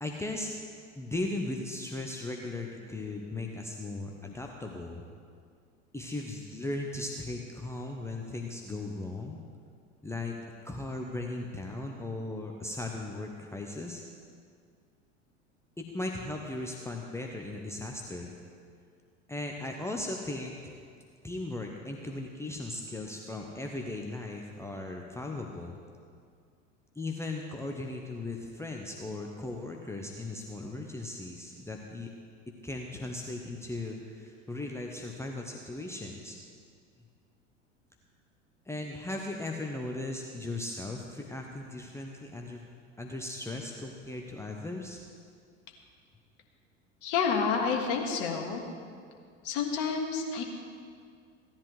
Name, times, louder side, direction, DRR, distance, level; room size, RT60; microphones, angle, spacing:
voice 1, 0.0-0.5 0.9-5.0 5.9-9.4 10.0-10.3 10.6-14.0 15.8-18.3 19.3-20.7 21.2-25.8 27.0-32.1 32.6-36.4 38.7-42.6 43.0-45.0, left 2 dB, 5° left, 0 dB, 0.8 m, -37 dB
voice 2, 47.0-48.6 49.4-50.4, left 5 dB, 55° left, 2 dB, 1.7 m, -29 dB
16.0 x 10.0 x 3.2 m, 2.2 s
figure-of-eight pair, 75°, 37 cm